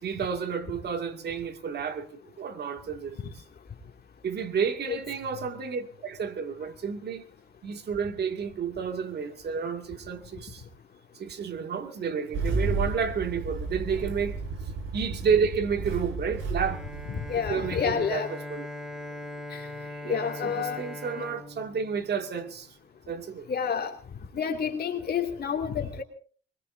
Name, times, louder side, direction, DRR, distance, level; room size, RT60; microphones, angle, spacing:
voice 1, 0.0-3.3 4.2-7.3 7.6-10.6 11.1-14.4 14.9-16.8 17.5-18.7 19.9-22.7 23.1-23.5, right 6 dB, 55° right, 2.3 m, -31 dB
Engine starting, 12.3-17.9, right 3 dB, 85° right, 5.1 m, -33 dB
Bowed string instrument, 16.6-22.6, left 1 dB, 5° right, 3.0 m, -41 dB
voice 2, 17.1-18.3 19.5-19.7 20.1-20.8 21.2-21.3 23.5-23.9 24.3-26.0, left 7 dB, 50° left, 2.5 m, -29 dB
24.5 x 21.5 x 2.7 m
cardioid pair, 90°, 20 cm